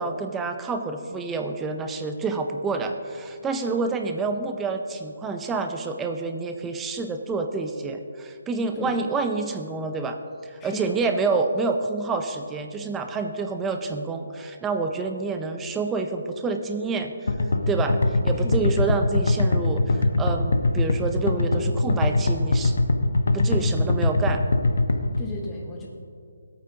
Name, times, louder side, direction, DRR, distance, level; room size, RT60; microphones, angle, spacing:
voice 1, 0.0-10.2 10.4-17.1 17.7-22.7 23.3-24.4, right 4 dB, 10° right, 6 dB, 0.5 m, -28 dB
voice 2, 10.6-11.0 18.4-18.7 25.2-25.9, left 2 dB, 10° left, -2 dB, 1.0 m, -35 dB
sound 1, 17.3-25.2, left 2 dB, 70° left, 0.9 m, -21 dB
17.0 x 8.7 x 2.8 m, 2.3 s
hypercardioid pair, 170°, 0 cm